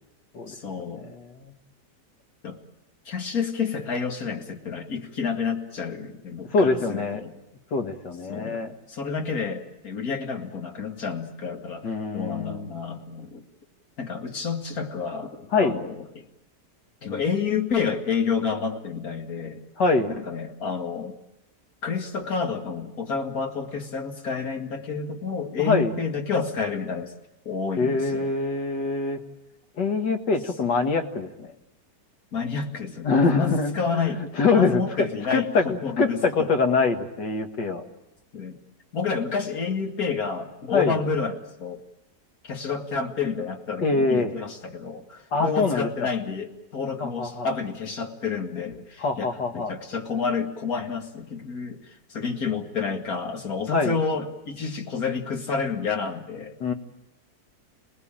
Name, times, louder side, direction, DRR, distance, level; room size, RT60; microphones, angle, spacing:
voice 1, 0.5-1.1 2.4-2.6 3.1-7.3 8.3-8.6 8.9-13.4 14.0-16.3 17.0-19.6 20.2-21.2 21.8-27.1 27.5-28.3 32.3-33.1 33.3-34.2 34.6-36.5 38.3-38.6 38.9-41.8 42.5-56.5, left 5 dB, 60° left, 3 dB, 2.6 m, -29 dB
voice 2, 1.0-1.5 6.5-7.2 7.7-8.7 11.8-12.7 15.5-15.8 19.8-20.1 25.6-25.9 27.8-29.2 29.8-31.5 33.0-37.8 40.7-41.0 43.8-44.4 45.3-46.1 47.0-47.5 49.0-49.7 53.7-54.0 56.6-56.7, left 4 dB, 85° left, 4 dB, 2.5 m, -24 dB
28.0 x 19.5 x 9.0 m, 0.91 s
omnidirectional pair, 1.8 m